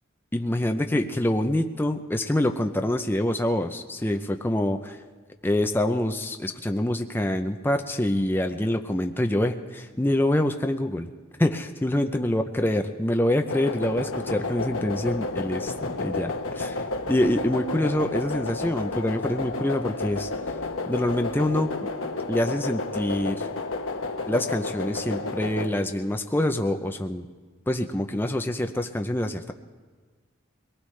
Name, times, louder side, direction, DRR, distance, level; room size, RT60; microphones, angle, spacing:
voice 1, 0.3-5.0 5.4-11.1 11.4-20.3 20.9-21.8 22.3-23.5 24.3-27.3 27.7-29.5, left 1 dB, 10° left, 5 dB, 0.5 m, -26 dB
sound 1, 13.5-25.7, left 3 dB, 75° left, 1.1 m, -31 dB
23.5 x 18.5 x 3.2 m, 1.4 s
head